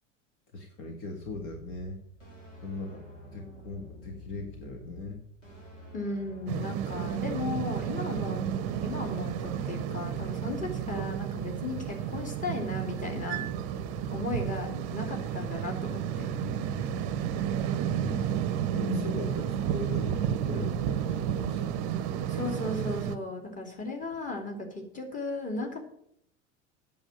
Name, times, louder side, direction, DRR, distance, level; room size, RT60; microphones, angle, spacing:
voice 1, 0.5-2.0 2.6-3.1 3.3-5.2 16.4-17.1 17.5-18.3 18.7-21.9, left 3 dB, 45° left, 3 dB, 1.8 m, -40 dB
sound 1, 1.2-17.6, equal, 75° left, 3.9 m, -49 dB
voice 2, 5.9-8.4 8.8-13.5 14.1-16.3 18.8-19.3 22.3-25.9, left 3 dB, 20° left, 2 dB, 2.9 m, -36 dB
sound 2, 6.5-23.2, right 9 dB, 40° right, 0.8 m, -32 dB
8.8 x 7.2 x 8.9 m, 0.70 s
figure-of-eight pair, 85°, 37 cm